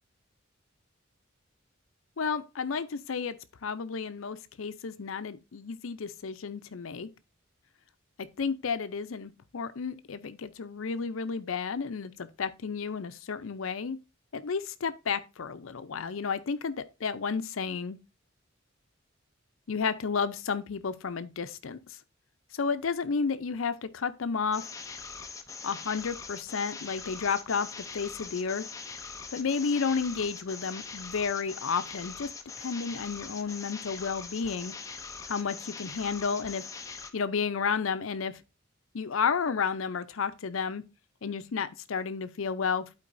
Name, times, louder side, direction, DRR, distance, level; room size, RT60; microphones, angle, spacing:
voice 1, 2.2-3.4 3.6-7.1 8.4-14.0 14.3-16.7 17.0-18.0 19.7-21.8 22.5-24.6 25.6-27.7 27.9-28.6 29.3-32.3 32.6-34.7 35.3-36.6 37.1-38.3 38.9-40.8 41.2-42.9, left 5 dB, 75° left, 0.6 m, -32 dB
sound 1, 24.5-37.1, left 5 dB, 15° left, 0.5 m, -42 dB
11.5 x 4.5 x 2.6 m
head